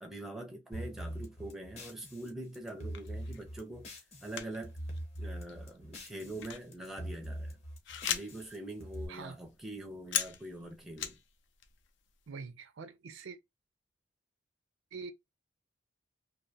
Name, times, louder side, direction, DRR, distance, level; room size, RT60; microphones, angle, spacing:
voice 1, 0.0-4.8 5.2-7.6 8.1-11.2, right 1 dB, ahead, 0.4 m, -44 dB
sound 1, 0.7-4.4 4.6-6.5 6.7-9.1, equal, 30° left, 0.7 m, -43 dB
sound 2, 2.8-3.4 4.3-4.6 4.9-5.1 5.5-8.5 8.8-8.9 9.2-11.3 11.5-12.1, left 9 dB, 65° left, 0.4 m, -38 dB
voice 2, 12.3-13.4 14.9-15.1, right 5 dB, 70° right, 0.4 m, -44 dB
2.5 x 2.0 x 2.6 m
head